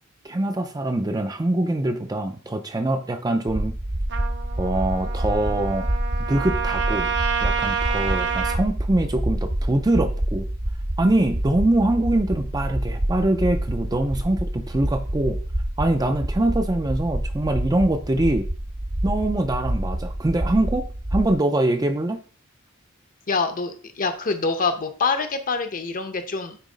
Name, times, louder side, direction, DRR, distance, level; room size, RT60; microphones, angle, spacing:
voice 1, 0.2-3.8 4.6-5.9 6.3-7.2 7.4-10.5 11.0-15.4 15.8-18.5 19.0-20.9 21.1-22.2, right 1 dB, 20° right, 7 dB, 0.5 m, -23 dB
sound 1, 3.5-21.3, right 1 dB, 35° right, 0.9 m, -27 dB
Trumpet, 4.1-8.6, right 7 dB, 60° right, 0.8 m, -28 dB
voice 2, 23.3-26.6, left 4 dB, 40° left, 8 dB, 0.8 m, -25 dB
9.0 x 3.1 x 5.0 m, 0.40 s
head